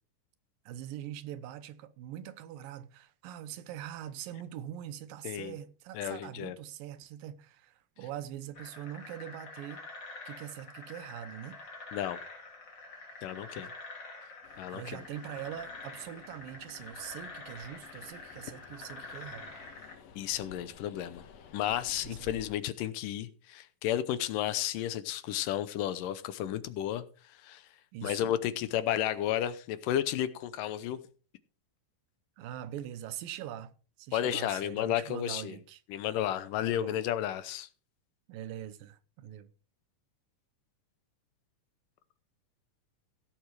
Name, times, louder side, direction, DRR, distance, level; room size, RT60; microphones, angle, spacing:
voice 1, 0.7-9.8 10.3-11.6 13.6-13.7 14.7-19.5 22.0-22.3 27.9-28.3 32.4-35.8 36.7-37.0 38.3-39.5, right 11 dB, 85° right, 2.6 m, -43 dB
voice 2, 5.2-5.6 5.9-6.6 11.9-12.2 13.2-13.7 14.6-15.0 20.2-21.2 21.5-27.7 28.0-31.0 34.1-35.6 35.9-37.7, left 11 dB, 80° left, 2.4 m, -32 dB
sound 1, 8.6-19.9, left 3 dB, 35° left, 3.0 m, -47 dB
Train, 14.4-22.6, left 6 dB, 60° left, 1.9 m, -53 dB
16.5 x 7.1 x 4.7 m
omnidirectional pair, 3.9 m